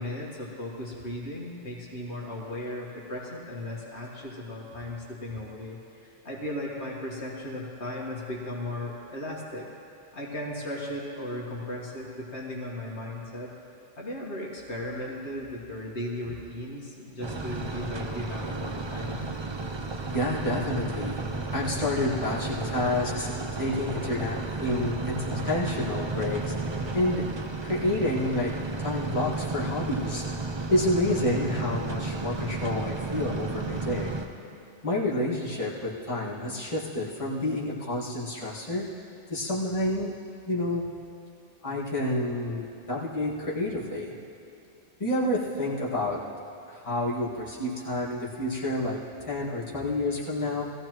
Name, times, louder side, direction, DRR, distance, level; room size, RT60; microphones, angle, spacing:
voice 1, 0.0-9.7 10.1-13.5 14.0-19.3, left 1 dB, 70° left, -3 dB, 1.9 m, -36 dB
sound 1, 17.2-34.3, right 3 dB, 30° right, 0.6 m, -33 dB
voice 2, 20.1-21.2 21.5-27.3 27.6-28.5 28.8-30.3 30.7-34.2 34.8-38.9 39.3-40.1 40.5-40.8 41.6-44.1 45.0-46.2 46.7-50.6, left 1 dB, 30° left, -7 dB, 2.0 m, -29 dB
20.0 x 15.0 x 3.1 m, 2.8 s
omnidirectional pair, 1.2 m